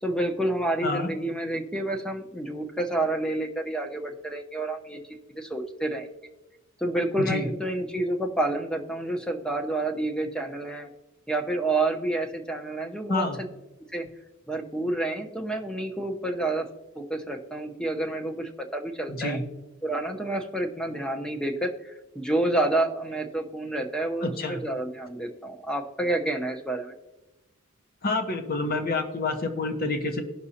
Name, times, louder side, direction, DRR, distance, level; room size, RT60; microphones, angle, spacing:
voice 1, 0.0-6.1 6.8-10.9 11.3-13.5 13.9-14.1 14.5-16.7 16.9-19.4 19.8-26.9, right 2 dB, 5° left, 4 dB, 0.8 m, -29 dB
voice 2, 19.1-19.4 24.2-24.6 28.0-30.2, left 2 dB, 45° left, 6 dB, 1.1 m, -28 dB
17.5 x 6.1 x 2.8 m, 1.0 s
head